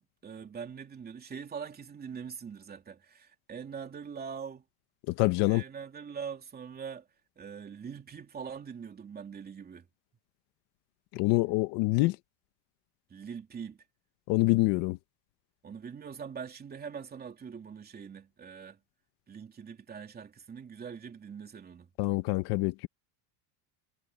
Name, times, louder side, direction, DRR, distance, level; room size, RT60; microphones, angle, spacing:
voice 1, 0.0-4.6 5.5-7.1 7.4-9.9 13.1-13.8 15.6-18.8 19.3-21.9, right 6 dB, 20° right, 3.1 m, -43 dB
voice 2, 5.2-5.6 11.1-12.1 14.3-15.0 22.0-22.9, left 21 dB, 55° left, 1.1 m, -26 dB
cardioid pair, 165°, 49 cm